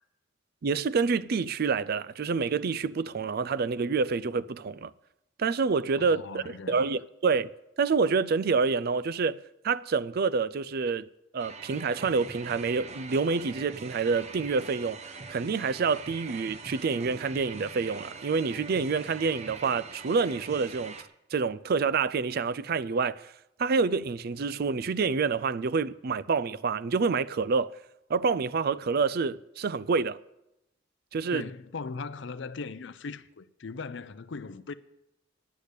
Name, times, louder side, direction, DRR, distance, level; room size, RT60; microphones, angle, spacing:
voice 1, 0.6-4.9 5.4-7.5 7.8-9.4 9.6-11.1 11.3-15.0 15.3-20.9 21.3-23.3 23.6-27.7 28.1-30.2 31.1-31.5, right 5 dB, 55° right, 0.4 m, -27 dB
voice 2, 6.0-7.0 31.3-34.7, left 4 dB, 65° left, 0.6 m, -39 dB
sound 1, 11.4-21.0, right 4 dB, 35° right, 0.9 m, -43 dB
10.5 x 8.3 x 8.2 m
head